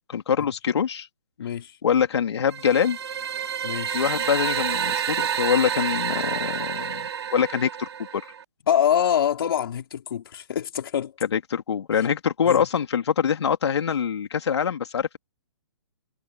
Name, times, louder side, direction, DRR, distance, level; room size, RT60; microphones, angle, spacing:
voice 1, 0.1-1.1 1.8-3.0 3.9-8.2 11.3-15.2, left 7 dB, 75° left, 3.4 m, -24 dB
voice 2, 1.4-1.8 3.6-4.0 8.7-11.2 11.9-12.1 12.5-12.6, left 9 dB, 55° left, 3.0 m, -25 dB
sound 1, 2.5-8.4, right 8 dB, 70° right, 3.1 m, -29 dB
hypercardioid pair, 170°, 14 cm